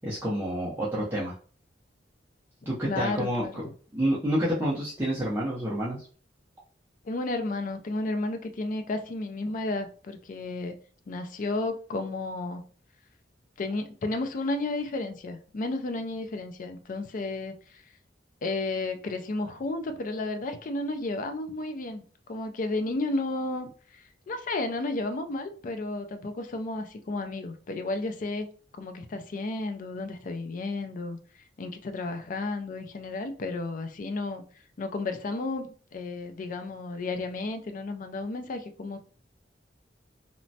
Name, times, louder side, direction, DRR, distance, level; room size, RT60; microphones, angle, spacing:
voice 1, 0.0-1.3 2.7-3.6 3.9-6.1, equal, 10° right, 0.5 m, -28 dB
voice 2, 2.9-3.6 7.0-10.8 11.1-12.6 13.6-17.8 18.4-22.0 22.3-28.5 28.8-31.2 31.6-34.4 34.8-39.0, left 2 dB, 45° left, 0.4 m, -32 dB
3.0 x 2.1 x 2.6 m
head